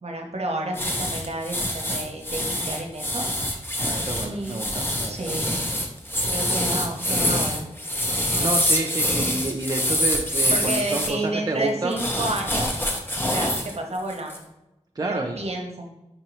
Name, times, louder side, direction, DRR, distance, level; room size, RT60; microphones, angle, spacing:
voice 1, 0.0-3.3 4.2-4.6 5.0-5.6 6.3-7.7 8.3-8.5 10.5-12.9 13.3-14.4 15.0-15.9, right 1 dB, 55° right, 2 dB, 0.8 m, -31 dB
sound 1, 0.7-11.1 11.9-13.7 14.1-14.4, equal, 15° left, 0.7 m, -25 dB
voice 2, 3.8-5.1 8.4-12.0 13.3-13.4 15.0-15.4, right 2 dB, 30° right, 1 dB, 0.4 m, -29 dB
5.5 x 2.9 x 2.9 m, 0.93 s
wide cardioid pair, 65°, 12 cm